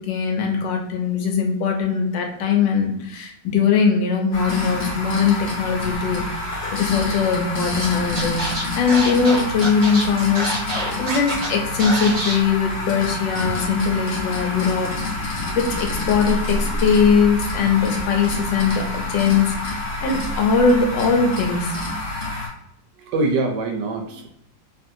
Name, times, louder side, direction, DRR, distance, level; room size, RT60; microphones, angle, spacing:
voice 1, 0.0-6.2 6.7-15.3 15.5-21.8, left 5 dB, 80° left, 2 dB, 1.3 m, -21 dB
sound 1, 4.3-22.5, left 2 dB, 50° left, 1.0 m, -28 dB
Scratching (performance technique), 7.8-7.9 8.1-11.5 11.8-12.3, right 1 dB, 45° right, 0.6 m, -26 dB
voice 2, 23.0-24.3, right 3 dB, 75° right, 3 dB, 1.1 m, -24 dB
3.0 x 2.6 x 2.6 m, 0.79 s
omnidirectional pair, 2.0 m